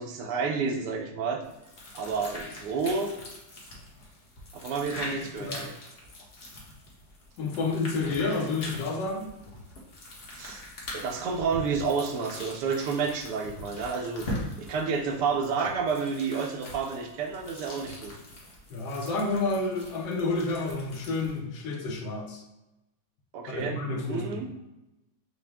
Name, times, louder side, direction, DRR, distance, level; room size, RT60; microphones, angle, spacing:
voice 1, 0.0-1.4 1.9-3.1 4.5-5.7 10.3-10.6 10.9-14.3 14.6-18.1 23.3-24.5, right 5 dB, 70° right, 3 dB, 1.1 m, -30 dB
sound 1, 1.4-21.4, left 1 dB, 45° left, 0.8 m, -42 dB
voice 2, 5.0-5.6 7.4-9.3 18.7-22.4 23.5-24.4, left 3 dB, 70° left, 1 dB, 1.4 m, -30 dB
6.0 x 2.1 x 3.3 m, 0.95 s
omnidirectional pair, 2.1 m